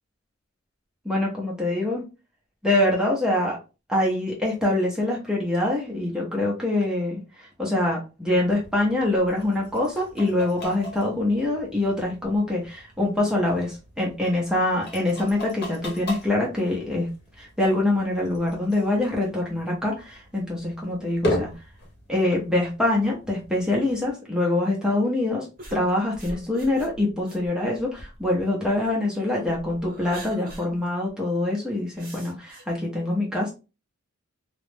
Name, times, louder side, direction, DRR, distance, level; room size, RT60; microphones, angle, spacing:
voice 1, 1.0-2.0 2.6-3.6 3.9-17.1 17.4-21.5 22.1-25.5 25.7-33.5, left 1 dB, 5° right, -3 dB, 0.6 m, -24 dB
sound 1, 8.3-24.1, left 1 dB, 50° left, 0.9 m, -38 dB
sound 2, 25.6-28.9 29.4-30.7 31.1-31.2 32.0-32.6, right 1 dB, 45° right, 0.9 m, -42 dB
2.3 x 2.0 x 3.2 m, 0.30 s
head